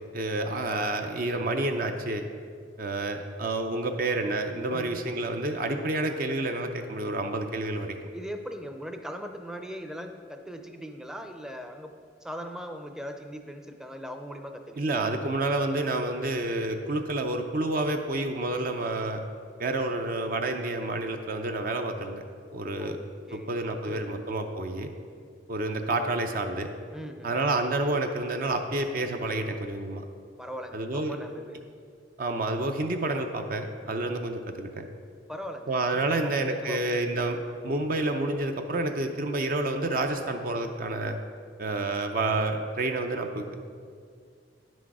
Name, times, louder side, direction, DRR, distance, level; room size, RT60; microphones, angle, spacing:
voice 1, 0.1-2.2 2.8-8.0 14.8-19.2 19.6-22.2 22.5-23.0 23.3-24.9 25.5-26.7 27.2-30.0 30.7-31.2 32.2-34.8 35.7-41.2 41.6-43.5, right 2 dB, 50° right, 5 dB, 0.5 m, -29 dB
voice 2, 4.7-5.1 8.1-11.9 12.2-14.8 22.8-23.0 23.3-23.5 23.9-24.3 26.9-27.3 30.4-31.6 35.3-36.8, equal, 5° right, 6 dB, 0.5 m, -40 dB
9.8 x 6.2 x 4.8 m, 2.2 s
head